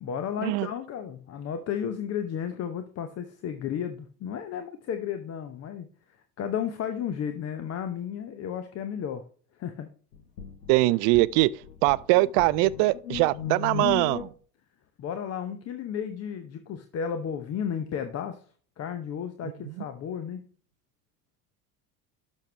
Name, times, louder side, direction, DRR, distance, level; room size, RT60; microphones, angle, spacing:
voice 1, 0.0-9.2 9.5-9.9 15.0-18.4 18.8-20.4, left 8 dB, 30° left, 0.8 m, -33 dB
sound 1, 10.1-14.3, left 8 dB, 70° left, 1.5 m, -36 dB
voice 2, 10.7-14.3 19.4-19.8, right 20 dB, 40° right, 0.4 m, -23 dB
11.5 x 6.3 x 3.2 m
hypercardioid pair, 80°, 49 cm